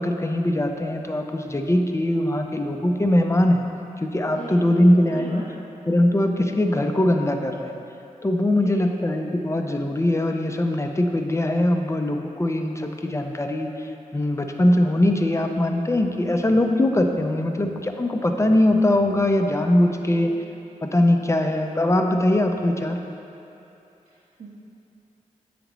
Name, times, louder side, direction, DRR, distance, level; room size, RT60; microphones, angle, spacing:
voice 1, 0.0-3.6 4.0-5.4 5.9-7.8 8.2-20.3 20.8-23.0, left 1 dB, 20° left, 4 dB, 0.6 m, -21 dB
voice 2, 4.2-5.6 8.5-9.0 16.2-16.7 20.0-20.4 24.1-24.5, right 2 dB, 55° right, -9 dB, 1.1 m, -39 dB
7.8 x 5.0 x 3.0 m, 2.9 s
cardioid pair, 50°, 14 cm